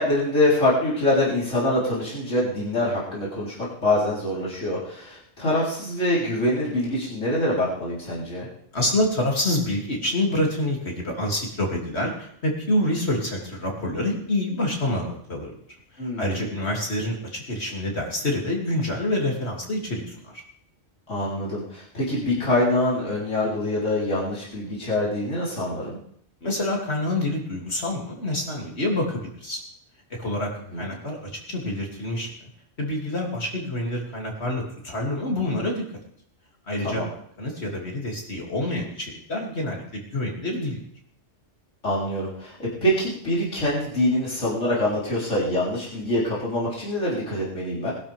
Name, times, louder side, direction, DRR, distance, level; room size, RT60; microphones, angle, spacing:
voice 1, 0.0-8.5 16.0-16.5 21.1-26.0 30.7-30.9 36.8-37.1 41.8-47.9, left 1 dB, 90° left, -7 dB, 4.4 m, -25 dB
voice 2, 8.7-15.6 15.9-20.4 26.4-29.6 30.2-32.3 32.8-35.9 36.7-37.0 37.4-40.8, left 1 dB, 60° left, -1 dB, 3.1 m, -27 dB
20.5 x 12.0 x 3.5 m, 0.67 s
omnidirectional pair, 1.2 m